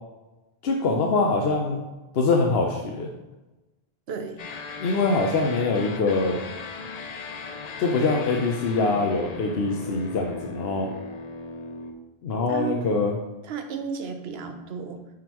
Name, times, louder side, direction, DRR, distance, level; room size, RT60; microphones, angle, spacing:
voice 1, 0.6-1.8 2.1-3.1 4.8-6.4 7.8-10.9 12.2-13.1, left 3 dB, 75° left, 1 dB, 0.9 m, -23 dB
voice 2, 4.1-4.4 12.5-12.8 13.4-15.0, right 6 dB, 80° right, 6 dB, 1.0 m, -33 dB
sound 1, 4.4-11.9, left 4 dB, 50° left, 0.6 m, -38 dB
9.5 x 3.8 x 3.0 m, 1.1 s
omnidirectional pair, 1.0 m